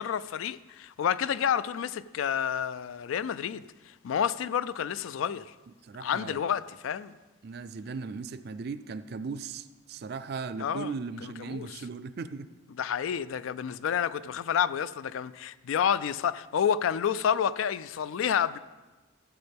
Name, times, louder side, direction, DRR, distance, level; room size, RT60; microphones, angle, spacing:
voice 1, 0.0-5.5 6.0-7.1 10.6-10.9 11.2-11.7 12.8-18.6, left 8 dB, 65° left, 0.3 m, -29 dB
voice 2, 5.8-6.4 7.4-12.5, right 4 dB, 45° right, 0.4 m, -37 dB
14.5 x 7.8 x 3.5 m
head